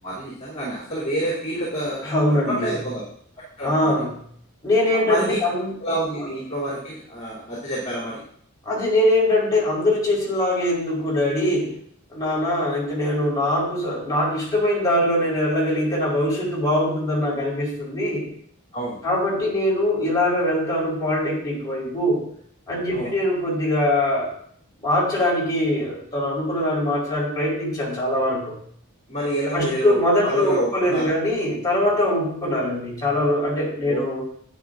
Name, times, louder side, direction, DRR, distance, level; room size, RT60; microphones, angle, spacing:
voice 1, 0.0-3.0 3.6-3.9 5.0-5.4 5.8-8.2 18.7-19.0 22.9-23.1 29.1-30.0 30.2-31.1 33.9-34.0, right 1 dB, 35° left, -8 dB, 3.3 m, -28 dB
voice 2, 2.0-2.7 3.6-4.1 4.6-5.8 6.2-6.3 8.6-11.7 12.1-18.3 19.0-22.2 22.7-24.3 24.8-28.5 29.5-34.2, left 1 dB, 20° left, -6 dB, 4.5 m, -22 dB
10.5 x 9.7 x 2.6 m, 0.63 s
head